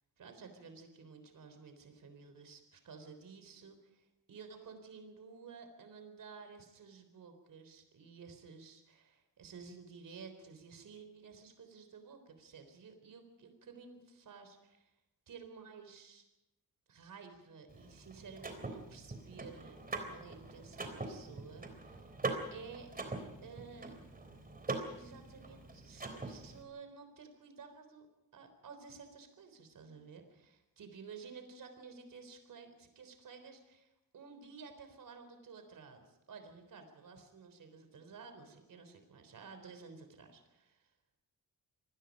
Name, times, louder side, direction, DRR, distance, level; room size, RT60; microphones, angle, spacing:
voice 1, 0.2-14.9 15.3-16.3 16.9-19.8 20.1-22.1 22.5-22.9 23.4-23.9 24.6-24.7 24.9-28.1 28.3-40.9, right 5 dB, 65° right, 7 dB, 3.8 m, -53 dB
Car / Mechanisms, 17.7-26.6, right 3 dB, 25° right, 3.6 m, -43 dB
26.5 x 19.5 x 5.3 m, 0.94 s
wide cardioid pair, 145°, 35 cm